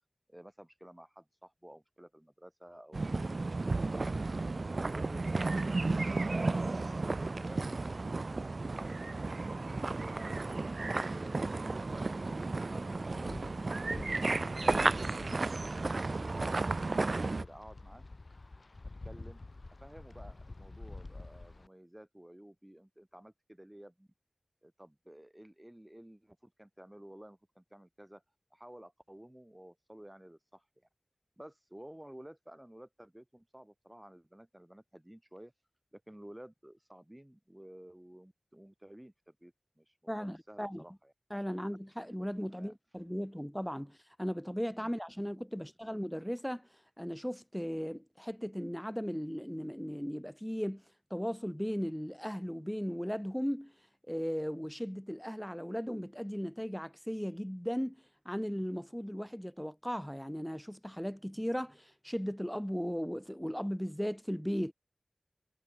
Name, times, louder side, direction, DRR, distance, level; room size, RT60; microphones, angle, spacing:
voice 1, 0.3-4.1 4.7-8.0 8.4-9.3 9.6-12.2 12.5-15.8 16.1-18.0 18.8-19.4 19.8-24.1 24.6-28.2 28.5-30.9 31.4-35.5 35.9-41.1 42.5-42.7 44.8-44.9 45.5-45.7, right 1 dB, 15° right, 2.9 m, -53 dB
sound 1, 2.9-17.4, right 3 dB, 70° right, 0.4 m, -33 dB
Wind, 11.9-21.7, left 2 dB, 60° left, 1.7 m, -49 dB
voice 2, 40.1-40.8 41.3-46.7 47.0-50.8 51.1-53.7 54.1-58.0 58.2-64.7, equal, 5° left, 0.9 m, -37 dB
wide cardioid pair, 55°, 0 cm